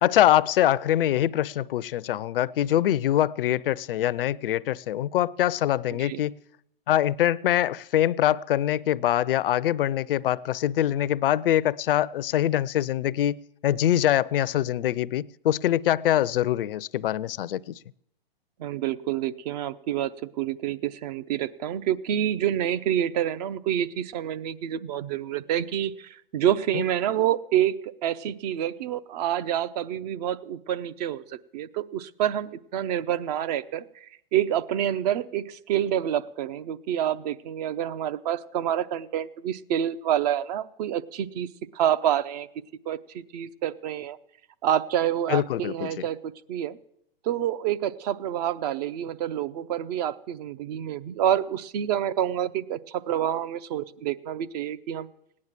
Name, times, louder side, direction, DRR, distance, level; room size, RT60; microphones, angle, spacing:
voice 1, 0.0-6.4 6.9-17.7 26.7-26.8 45.3-46.0, left 12 dB, 65° left, 0.6 m, -24 dB
voice 2, 18.6-20.1 20.4-42.5 42.9-44.2 44.6-46.8 47.2-55.1, right 11 dB, 40° right, 0.7 m, -28 dB
17.5 x 9.7 x 7.4 m
hypercardioid pair, 125°, 30 cm